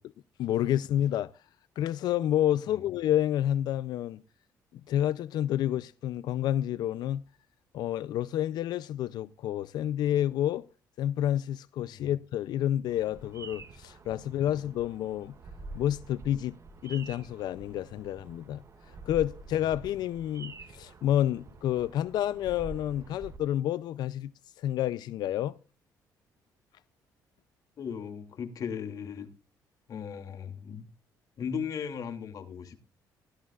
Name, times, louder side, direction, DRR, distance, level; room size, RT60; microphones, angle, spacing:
voice 1, 0.4-1.4 1.8-4.2 4.7-7.2 7.7-10.6 11.0-15.3 15.7-16.6 16.8-24.3 24.6-25.6, left 11 dB, 75° left, 0.5 m, -29 dB
Bird vocalization bird call bird song, 12.9-23.4, right 3 dB, 45° right, 2.0 m, -47 dB
voice 2, 27.8-29.3 29.9-30.8 31.4-32.8, left 7 dB, 55° left, 2.7 m, -37 dB
16.5 x 13.0 x 2.4 m
cardioid pair, 110°, 7 cm